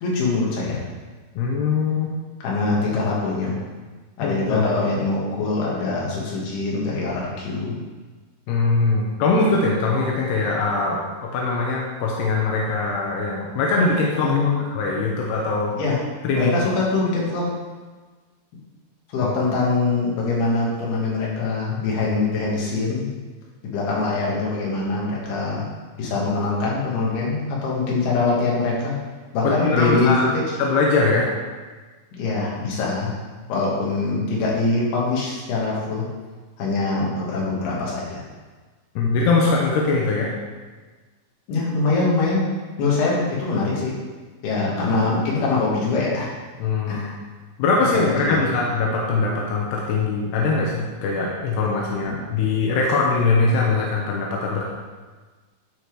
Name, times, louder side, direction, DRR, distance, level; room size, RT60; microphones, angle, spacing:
voice 1, 0.0-0.8 2.4-3.5 4.2-7.8 14.2-14.8 15.7-16.0 16.3-17.4 19.1-23.1 23.6-25.7 26.0-29.0 29.3-30.4 32.2-33.1 33.5-36.1 36.6-38.2 41.5-42.4 42.8-43.9 44.4-46.3 46.9-47.1 47.9-48.4 52.0-52.2, left 3 dB, 60° left, -4 dB, 3.3 m, -23 dB
voice 2, 1.4-2.1 4.2-4.7 8.5-14.3 14.7-15.7 16.2-16.5 19.2-19.3 29.4-30.3 30.6-31.3 39.0-40.3 46.6-47.1 47.6-54.7, left 3 dB, 75° left, -2 dB, 2.5 m, -22 dB
12.0 x 4.4 x 4.7 m, 1.4 s
omnidirectional pair, 5.8 m